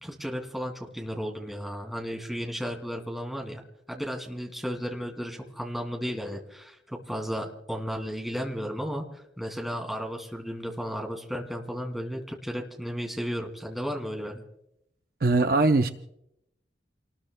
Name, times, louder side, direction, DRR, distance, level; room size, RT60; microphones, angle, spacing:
voice 1, 0.0-3.6 3.9-14.4, equal, ahead, 1 dB, 2.5 m, -34 dB
voice 2, 15.2-15.9, right 3 dB, 50° right, 7 dB, 0.6 m, -21 dB
29.0 x 20.0 x 2.2 m, 0.80 s
head